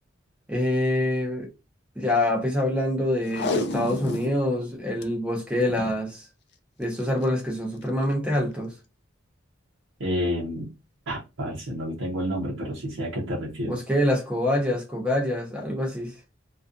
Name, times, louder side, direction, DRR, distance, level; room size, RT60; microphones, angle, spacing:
voice 1, 0.5-1.5 2.0-6.3 6.8-8.7 13.6-16.2, left 1 dB, 5° right, 0.7 m, -25 dB
Packing tape duct tape, 3.3-4.4 4.7-4.8 5.0-5.1 5.7-6.0 7.0-7.2 7.8-7.9, left 2 dB, 55° left, 0.4 m, -29 dB
voice 2, 10.0-10.7 11.1-13.8, equal, 80° right, 0.7 m, -29 dB
2.4 x 2.3 x 2.5 m
head